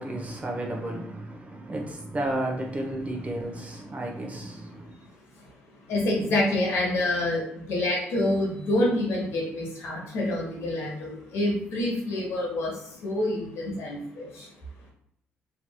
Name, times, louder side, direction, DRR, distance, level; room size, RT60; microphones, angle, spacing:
voice 1, 0.0-5.0, right 1 dB, 30° right, 0.8 m, -32 dB
voice 2, 5.9-14.5, left 1 dB, 80° left, 1.0 m, -27 dB
3.0 x 2.8 x 2.2 m
supercardioid pair, 70°, 5 cm